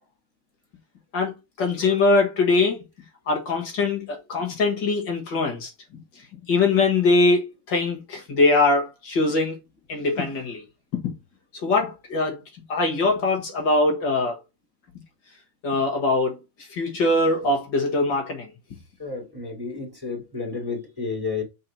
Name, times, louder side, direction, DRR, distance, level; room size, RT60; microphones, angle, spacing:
voice 1, 1.1-2.8 3.3-5.7 6.5-9.6 9.9-10.6 10.9-11.1 11.6-12.4 12.7-14.4 15.6-16.4 16.7-18.5, left 3 dB, 60° left, 2.4 m, -22 dB
voice 2, 19.0-21.4, left 4 dB, 10° right, 2.5 m, -31 dB
7.8 x 4.0 x 4.4 m
omnidirectional pair, 2.3 m